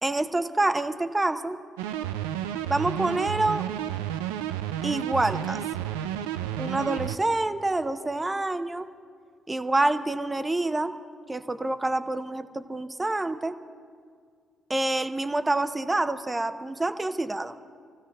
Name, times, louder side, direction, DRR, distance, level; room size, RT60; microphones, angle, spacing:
voice 1, 0.0-1.6 2.7-3.7 4.8-5.6 6.6-8.9 9.5-11.0 11.3-13.6 14.7-17.6, right 2 dB, 20° right, 10 dB, 0.8 m, -27 dB
sound 1, 1.8-7.2, right 11 dB, 85° right, 0.3 m, -31 dB
28.0 x 15.0 x 2.4 m, 2.1 s
hypercardioid pair, 50°, 0 cm